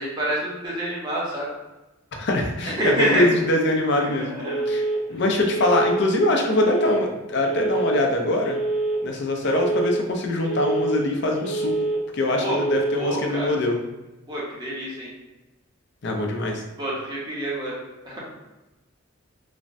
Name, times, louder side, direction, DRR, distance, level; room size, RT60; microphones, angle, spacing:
voice 1, 0.0-1.5 2.6-3.4 4.0-4.6 12.4-12.6 13.0-13.5 14.3-15.1 16.8-17.8 18.0-18.2, right 1 dB, 25° right, -6 dB, 0.8 m, -27 dB
voice 2, 2.2-4.3 4.7-4.8 5.1-8.6 9.0-11.7 12.1-13.8 16.0-16.6, left 1 dB, 60° left, 2 dB, 0.5 m, -23 dB
Telephone, 4.4-5.0 5.4-6.0 6.4-7.0 7.4-8.0 8.4-9.0 9.4-10.0 10.4-11.0 11.4-12.0 12.4-13.0, right 2 dB, 75° right, 0.8 m, -25 dB
3.2 x 2.1 x 2.6 m, 1.0 s
head